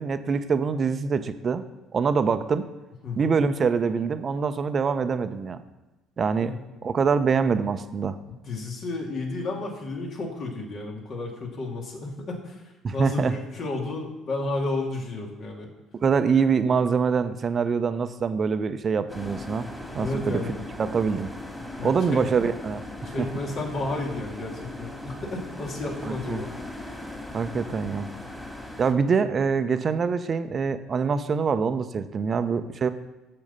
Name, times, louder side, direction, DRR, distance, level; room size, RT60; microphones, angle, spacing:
voice 1, 0.0-1.6 1.9-2.6 3.2-5.6 6.2-6.6 6.8-8.2 12.8-13.3 15.9-19.6 19.9-20.4 20.8-21.3 21.8-23.3 26.0-26.4 27.3-28.1 28.8-32.9, right 5 dB, 40° right, 11 dB, 0.7 m, -24 dB
voice 2, 3.0-3.4 6.4-6.6 8.4-12.6 12.9-15.7 20.0-20.5 21.8-22.2 23.0-26.5, left 2 dB, 55° left, 0 dB, 2.4 m, -32 dB
sound 1, 19.1-28.9, left 1 dB, 10° left, 2.4 m, -38 dB
7.6 x 7.1 x 5.6 m, 1.1 s
hypercardioid pair, 55°, 0 cm